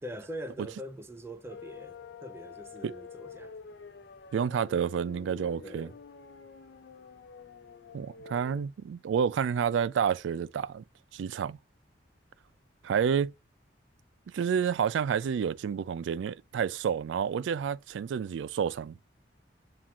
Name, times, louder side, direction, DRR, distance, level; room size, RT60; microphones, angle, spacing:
voice 1, 0.0-3.6 5.6-6.0, right 1 dB, 15° right, 0.6 m, -43 dB
sound 1, 1.5-8.7, left 6 dB, 65° left, 0.4 m, -48 dB
voice 2, 4.3-5.9 7.9-10.8 11.1-11.6 12.8-13.3 14.3-19.0, right 7 dB, 90° right, 0.3 m, -29 dB
7.2 x 2.5 x 2.3 m
head